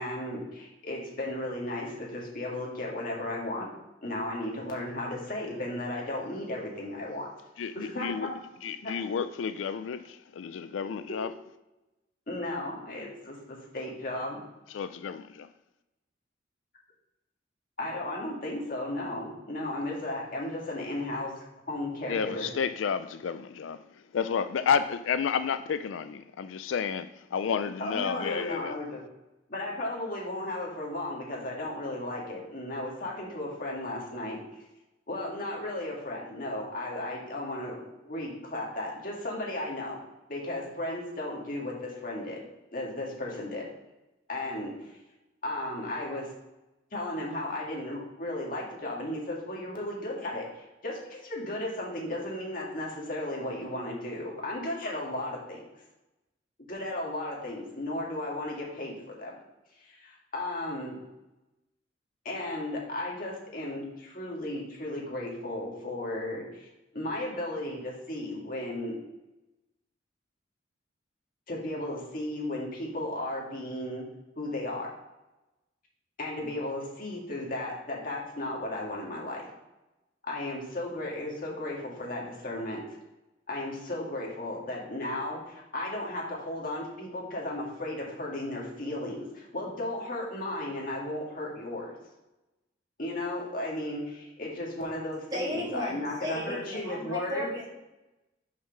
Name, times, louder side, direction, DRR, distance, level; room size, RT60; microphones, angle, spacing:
voice 1, 0.0-3.7 4.0-7.3 7.7-8.3 8.8-8.9 11.1-11.2 12.3-14.4 17.8-21.3 21.7-22.5 27.8-29.0 29.5-34.4 35.1-40.0 40.3-42.4 42.7-43.7 44.3-45.0 45.4-46.3 46.9-55.6 56.7-59.4 59.8-61.0 62.3-66.7 66.9-69.0 71.5-74.0 74.4-74.9 76.2-79.5 80.2-82.8 83.5-91.9 93.0-97.5, left 1 dB, 45° left, 1.9 m, -35 dB
voice 2, 7.6-8.3 8.6-11.3 14.7-15.5 22.1-28.8, left 6 dB, 85° left, 0.4 m, -31 dB
voice 3, 95.3-97.7, left 1 dB, 20° right, 2.1 m, -34 dB
5.7 x 4.7 x 5.8 m
head